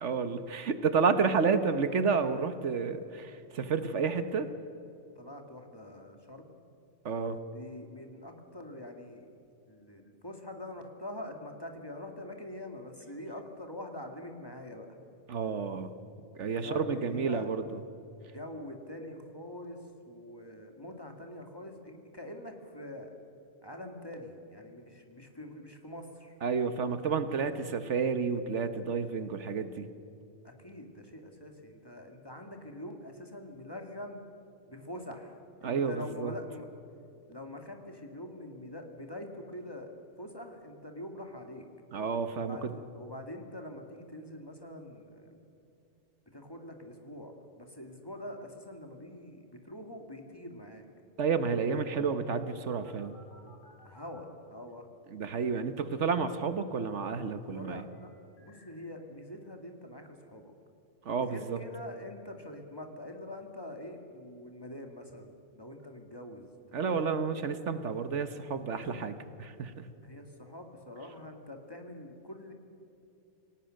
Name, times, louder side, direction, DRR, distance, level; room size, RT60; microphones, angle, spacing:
voice 1, 0.0-4.5 7.0-7.4 15.3-15.9 16.3-17.6 26.4-29.9 35.6-36.3 41.9-42.7 51.2-53.1 55.1-57.8 61.0-61.6 66.7-69.1 69.4-69.9, right 5 dB, 70° right, 10 dB, 1.4 m, -30 dB
voice 2, 5.2-6.5 7.5-9.3 9.7-14.9 16.6-17.5 18.3-19.8 20.1-23.1 23.6-26.4 27.4-27.8 30.4-34.2 34.7-36.7 37.3-39.9 40.2-41.6 42.4-45.4 46.3-50.8 51.7-51.9 53.8-54.9 57.5-58.1 58.4-60.5 61.2-67.1 68.8-69.0 70.0-72.5, left 1 dB, 20° left, 4 dB, 2.2 m, -44 dB
sound 1, 52.8-54.2 57.9-58.7, left 4 dB, 85° left, 5.4 m, -55 dB
27.5 x 18.0 x 6.5 m, 2.7 s
omnidirectional pair, 1.3 m